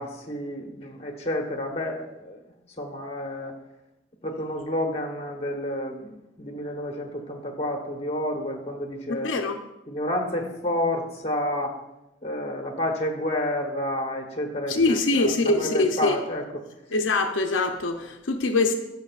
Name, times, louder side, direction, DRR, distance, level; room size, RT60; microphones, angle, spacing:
voice 1, 0.0-2.4 2.8-3.5 4.2-9.3 9.9-11.8 12.2-16.6, left 1 dB, 35° left, 3 dB, 1.1 m, -30 dB
voice 2, 9.1-9.6 14.7-16.2 16.9-18.7, left 3 dB, 75° left, 4 dB, 0.6 m, -23 dB
14.5 x 6.1 x 2.4 m, 0.94 s
head